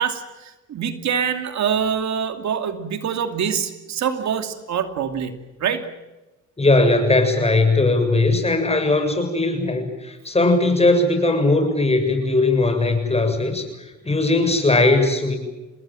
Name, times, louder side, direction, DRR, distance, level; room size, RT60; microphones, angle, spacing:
voice 1, 0.0-5.9, right 7 dB, 65° right, 7 dB, 2.6 m, -25 dB
voice 2, 6.6-13.7 14.0-15.4, left 2 dB, 20° left, 6 dB, 7.5 m, -19 dB
29.5 x 20.5 x 7.7 m, 1.1 s
cardioid pair, 90°, 30 cm